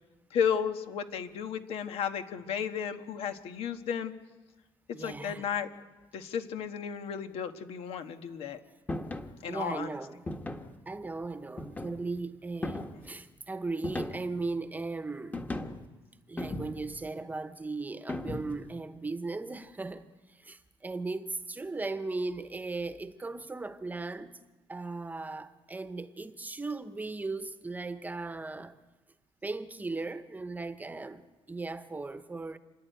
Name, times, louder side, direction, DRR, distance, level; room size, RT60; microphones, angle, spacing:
voice 1, 0.3-4.1 5.0-5.7 6.1-8.6 9.4-10.0, left 7 dB, 85° left, 1.4 m, -33 dB
voice 2, 4.9-5.5 9.5-10.2 10.9-15.4 16.3-28.7 29.4-32.6, right 3 dB, 15° right, 1.0 m, -37 dB
sound 1, 8.9-9.3 10.3-10.8 11.6-12.1 12.6-13.1 13.8-14.4 15.3-15.9 16.4-17.0 18.1-18.7, left 2 dB, 15° left, 1.4 m, -37 dB
29.5 x 11.0 x 9.2 m
cardioid pair, 115°, 10 cm